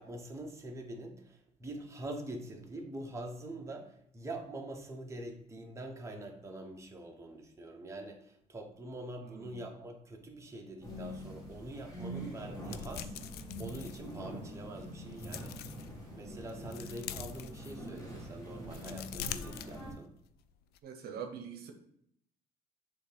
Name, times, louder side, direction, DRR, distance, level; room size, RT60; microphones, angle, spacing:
voice 1, 0.0-15.8 16.1-20.1, right 1 dB, 15° right, 1 dB, 1.1 m, -44 dB
voice 2, 9.2-9.6 20.8-21.7, right 7 dB, 65° right, 5 dB, 0.8 m, -44 dB
sound 1, 10.8-19.9, equal, 20° left, 2.3 m, -44 dB
sound 2, 12.6-14.6 15.0-15.9 16.3-18.1 18.5-20.3 20.6-20.8, left 10 dB, 70° left, 0.4 m, -44 dB
7.1 x 3.0 x 5.1 m, 0.70 s
cardioid pair, 110°, 17 cm